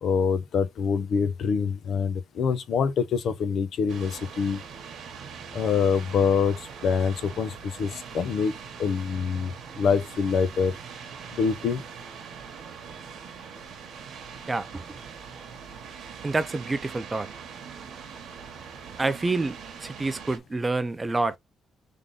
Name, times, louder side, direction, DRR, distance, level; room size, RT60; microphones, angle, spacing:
voice 1, 0.0-4.6 5.5-8.5 8.8-10.7 11.3-11.8, left 6 dB, 55° left, 0.9 m, -25 dB
sound 1, 3.9-20.4, right 6 dB, 65° right, 1.2 m, -42 dB
voice 2, 14.5-14.8 16.2-17.3 19.0-21.4, right 3 dB, 15° right, 0.4 m, -28 dB
3.8 x 3.5 x 3.6 m
cardioid pair, 150°, 0 cm